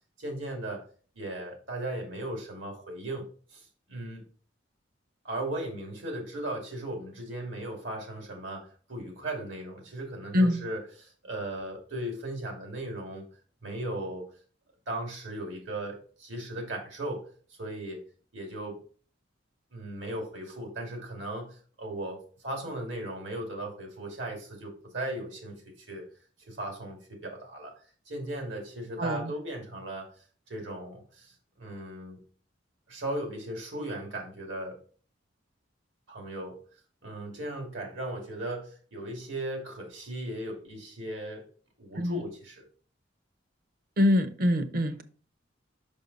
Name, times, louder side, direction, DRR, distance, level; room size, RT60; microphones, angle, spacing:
voice 1, 0.2-0.8 1.1-3.2 3.5-4.2 5.2-13.3 13.6-14.3 14.9-17.2 17.6-18.0 18.3-18.8 19.7-26.0 26.5-27.7 28.1-30.1 30.5-32.2 32.9-34.8 36.1-36.6 37.0-41.4 41.8-42.6, right 1 dB, 85° right, 2.5 m, -37 dB
voice 2, 29.0-29.3 42.0-42.2 44.0-45.0, left 1 dB, 50° right, 0.7 m, -24 dB
5.5 x 5.4 x 4.0 m
head